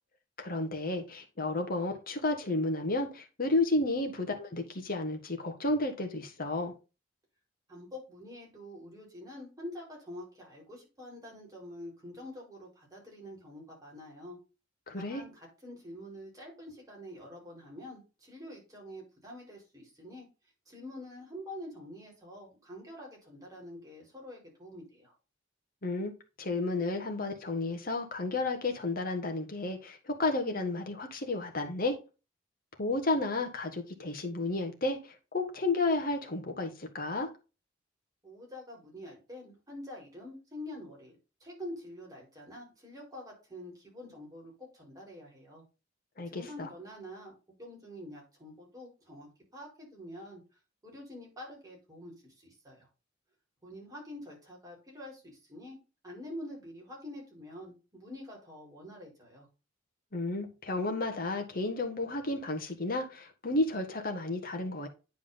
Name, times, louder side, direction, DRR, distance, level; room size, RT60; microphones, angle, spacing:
voice 1, 0.4-6.7 14.9-15.2 25.8-32.0 32.8-37.3 46.2-46.7 60.1-64.9, left 2 dB, 50° left, 1.7 m, -32 dB
voice 2, 7.7-14.4 15.0-20.3 20.7-25.1 38.2-45.6 46.3-50.4 50.8-52.9 53.6-55.8 56.0-59.5, left 1 dB, 20° right, 4.6 m, -46 dB
9.9 x 4.6 x 4.0 m
head